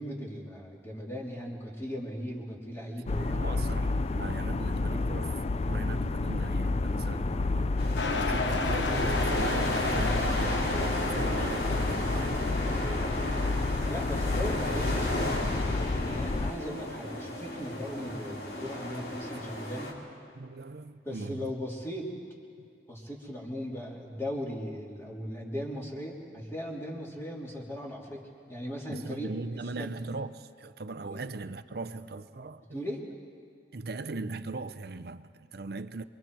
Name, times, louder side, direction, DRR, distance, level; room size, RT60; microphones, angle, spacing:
voice 1, 0.0-3.6 13.9-15.7 16.0-19.9 21.0-22.1 22.9-29.9 31.1-31.2 32.7-33.0, equal, 15° left, 3.0 m, -38 dB
sound 1, 3.1-16.5, left 3 dB, 35° left, 0.4 m, -30 dB
voice 2, 3.2-5.4 5.7-7.7 8.2-12.5 20.4-21.5 28.9-32.9 33.7-36.0, right 3 dB, 55° right, 0.6 m, -39 dB
sound 2, 7.8-19.9, left 1 dB, 55° left, 3.4 m, -34 dB
sound 3, 8.0-12.0, left 3 dB, 80° left, 1.2 m, -34 dB
28.0 x 23.5 x 4.7 m
head